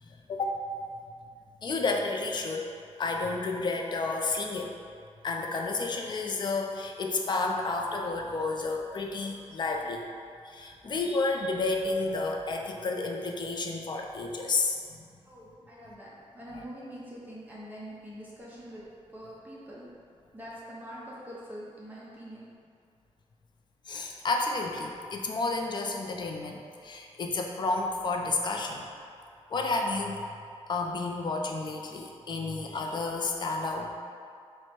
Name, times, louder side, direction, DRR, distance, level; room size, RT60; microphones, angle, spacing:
voice 1, 0.0-0.5 1.6-4.7 5.2-10.0 10.4-14.7 16.5-16.6 23.9-28.9 29.5-30.2 30.7-34.0, left 3 dB, 40° left, 2 dB, 0.4 m, -31 dB
voice 2, 15.3-18.8 19.1-19.9 20.3-22.5, equal, 15° right, -7 dB, 0.7 m, -44 dB
4.5 x 2.1 x 4.3 m, 2.4 s
wide cardioid pair, 160°, 11 cm